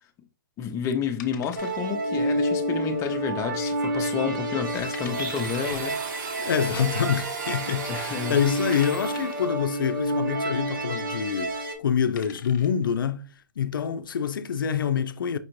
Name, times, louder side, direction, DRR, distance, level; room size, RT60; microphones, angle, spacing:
voice 1, 0.6-6.0 6.7-6.8 7.9-8.4, left 7 dB, 25° left, 0.6 m, -30 dB
sound 1, 1.2-2.2 2.4-2.5 3.1-3.5 3.9-4.0 4.6-4.7 4.9-5.9 7.0-7.1 7.8-7.9 8.7-9.6 11.4-11.6 12.0-12.8, left 8 dB, 60° left, 0.8 m, -45 dB
sound 2, 1.6-11.7, right 1 dB, 85° right, 1.4 m, -29 dB
Domestic sounds home sounds, 5.1-9.5, right 5 dB, 60° right, 0.9 m, -37 dB
voice 2, 6.4-13.3 13.6-15.4, left 8 dB, 85° left, 0.4 m, -26 dB
5.2 x 2.5 x 3.1 m
hypercardioid pair, 130°, 11 cm